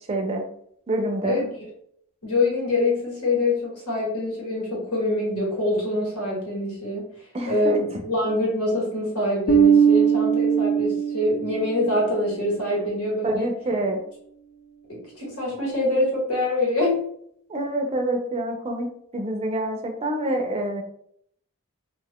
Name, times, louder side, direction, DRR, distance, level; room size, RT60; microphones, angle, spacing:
voice 1, 0.1-0.4 0.9-1.4 7.3-7.8 13.2-14.0 17.5-20.8, right 1 dB, 25° right, 3 dB, 0.5 m, -27 dB
voice 2, 1.2-1.7 2.2-7.1 7.5-13.5 14.9-17.0, left 1 dB, 85° left, -3 dB, 1.3 m, -25 dB
Bass guitar, 9.5-11.9, right 7 dB, 55° left, 0.3 m, -19 dB
2.5 x 2.3 x 3.5 m, 0.68 s
head